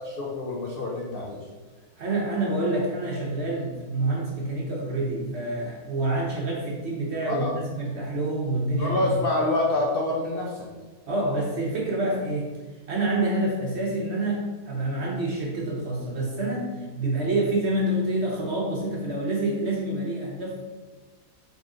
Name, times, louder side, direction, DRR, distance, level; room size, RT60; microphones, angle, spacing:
voice 1, 0.0-1.4 7.3-7.5 8.8-10.6, left 2 dB, 85° left, -2 dB, 0.5 m, -26 dB
voice 2, 2.0-9.2 11.1-12.5 12.9-20.6, right 2 dB, 55° right, -3 dB, 0.8 m, -27 dB
4.0 x 3.0 x 3.7 m, 1.3 s
omnidirectional pair, 1.7 m